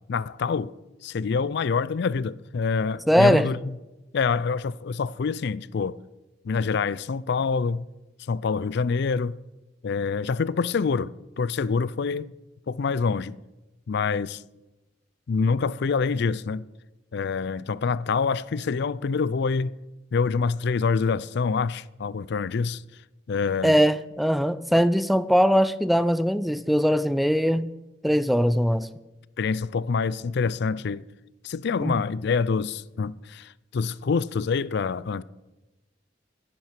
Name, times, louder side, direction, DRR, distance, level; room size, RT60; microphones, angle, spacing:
voice 1, 0.1-0.7 1.0-3.7 4.1-6.0 6.4-7.8 8.3-9.4 9.8-12.3 12.7-13.4 13.9-14.4 15.3-16.6 17.1-19.7 20.1-22.8 23.3-23.8 29.4-31.1 31.4-35.2, left 5 dB, 60° left, 0.4 m, -26 dB
voice 2, 3.1-3.5 23.6-27.7 28.0-28.9 31.8-32.0, equal, ahead, 0.4 m, -21 dB
12.5 x 10.5 x 5.9 m
head